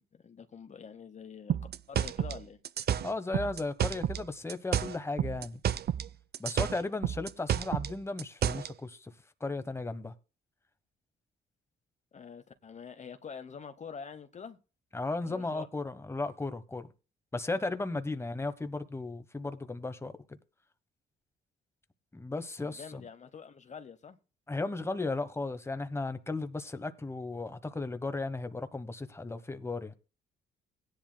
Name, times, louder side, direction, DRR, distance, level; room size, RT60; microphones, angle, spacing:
voice 1, 0.0-1.6 1.9-2.6 12.1-14.6 15.2-15.7 22.6-24.2, left 6 dB, 35° left, 0.9 m, -46 dB
sound 1, 1.5-4.2 4.5-6.1 6.3-8.7, right 9 dB, 55° right, 0.6 m, -30 dB
voice 2, 3.0-5.6 6.4-9.1 9.4-10.1 14.9-16.9 17.3-20.4 22.1-23.0 24.5-30.0, left 3 dB, 15° left, 1.1 m, -35 dB
17.0 x 10.5 x 2.2 m
cardioid pair, 90°, 20 cm